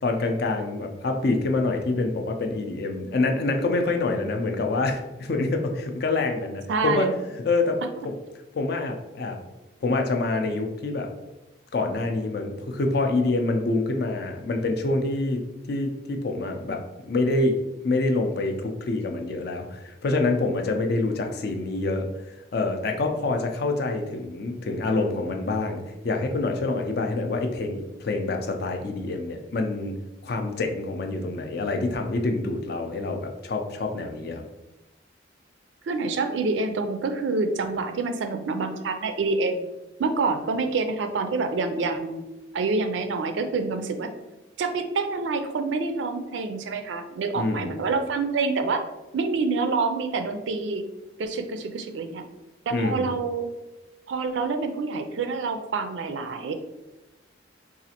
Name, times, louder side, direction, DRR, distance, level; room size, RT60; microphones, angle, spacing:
voice 1, 0.0-7.1 7.4-7.8 8.0-8.1 8.6-9.4 9.8-11.1 11.7-15.4 15.7-22.1 22.5-30.0 30.2-34.4 47.3-47.7 52.7-53.1, left 2 dB, 55° left, 4 dB, 0.4 m, -26 dB
voice 2, 6.7-7.1 35.9-39.7 40.0-42.2 42.5-44.1 44.6-48.8 49.1-50.8 51.2-52.2 52.7-53.5 54.1-56.5, right 4 dB, 70° right, 7 dB, 0.4 m, -27 dB
4.0 x 2.4 x 2.8 m, 1.0 s
head